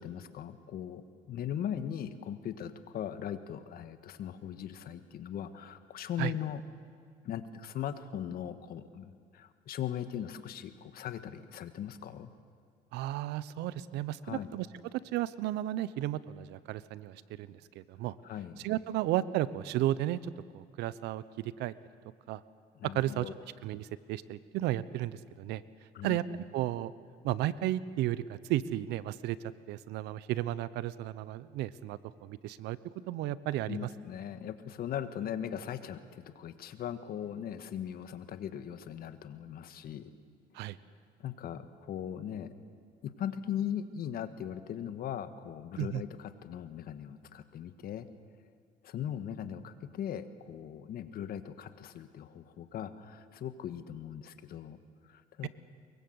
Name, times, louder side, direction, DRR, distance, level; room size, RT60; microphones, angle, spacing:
voice 1, 0.0-6.6 7.2-12.3 14.2-14.5 18.2-18.6 22.7-23.3 25.9-26.2 33.7-40.1 41.2-42.5 43.0-48.1 48.8-54.8 55.0-55.5, left 9 dB, 65° left, 11 dB, 1.5 m, -39 dB
voice 2, 12.9-14.7 15.1-18.2 18.6-20.2 20.5-21.7 22.3-22.4 22.9-23.3 23.6-25.6 26.0-26.9 27.2-29.4 29.7-32.8 33.1-33.9 40.5-40.8 45.8-46.0, right 14 dB, 90° right, 17 dB, 0.8 m, -33 dB
23.5 x 22.5 x 8.0 m, 2.2 s
cardioid pair, 110°, 17 cm